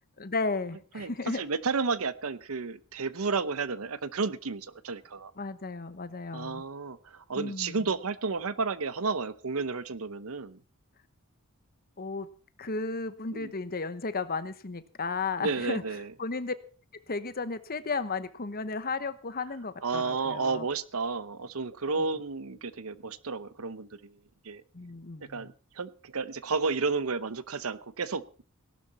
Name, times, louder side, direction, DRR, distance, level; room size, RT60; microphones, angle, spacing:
voice 1, 0.2-1.4 5.4-6.6 7.4-7.9 12.0-12.3 12.6-15.8 16.2-16.5 17.1-20.7 24.7-25.5, left 3 dB, 40° left, 12 dB, 1.0 m, -34 dB
voice 2, 0.9-5.3 6.3-10.6 13.3-13.5 15.4-16.1 19.8-24.1 24.4-24.6 25.3-28.4, right 4 dB, 70° right, 15 dB, 0.8 m, -32 dB
17.5 x 12.0 x 4.3 m, 0.38 s
head